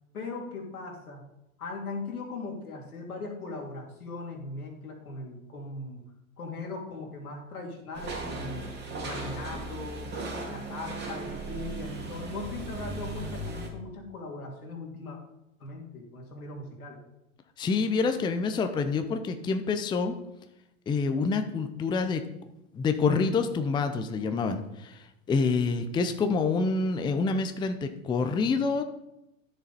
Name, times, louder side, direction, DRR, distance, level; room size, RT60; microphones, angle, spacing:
voice 1, 0.1-1.2 1.6-6.0 6.4-8.6 8.9-10.1 10.5-15.2 15.6-17.0, left 3 dB, 90° left, 0 dB, 2.7 m, -39 dB
sound 1, 7.9-13.7, right 2 dB, 25° right, 2.4 m, -37 dB
voice 2, 17.6-20.2 20.9-22.2 22.7-28.8, left 4 dB, 10° left, 8 dB, 0.5 m, -27 dB
10.5 x 6.6 x 4.2 m, 0.88 s
hypercardioid pair, 110°, 42 cm